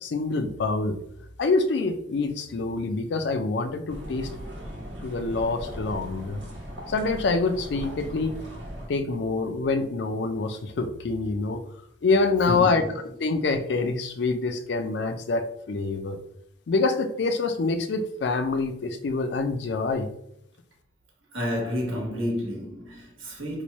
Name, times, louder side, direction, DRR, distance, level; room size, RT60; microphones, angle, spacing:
voice 1, 0.0-1.0 1.4-4.3 5.0-6.4 6.9-8.4 8.9-11.6 12.0-12.8 13.2-16.2 16.7-20.1, left 3 dB, 60° left, 0.4 m, -26 dB
sound 1, 3.9-8.9, equal, 65° right, 1.0 m, -38 dB
voice 2, 12.5-12.9 21.3-23.6, equal, 90° right, 1.2 m, -30 dB
3.0 x 2.2 x 4.0 m
head